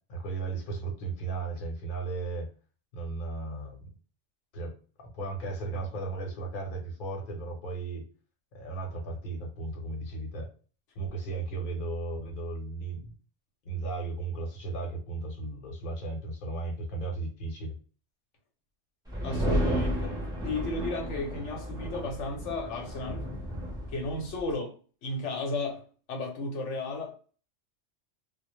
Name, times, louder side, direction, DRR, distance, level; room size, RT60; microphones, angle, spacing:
voice 1, 0.1-2.5 2.9-3.9 4.5-4.7 5.0-8.0 8.5-10.5 10.9-13.1 13.6-17.7, right 3 dB, 50° left, 0.9 m, -35 dB
sound 1, 19.1-24.5, equal, 5° right, 0.6 m, -33 dB
voice 2, 19.2-20.2 20.4-23.3 23.9-24.7 25.0-27.1, left 2 dB, 80° left, 0.9 m, -34 dB
2.1 x 2.1 x 2.9 m
omnidirectional pair, 1.2 m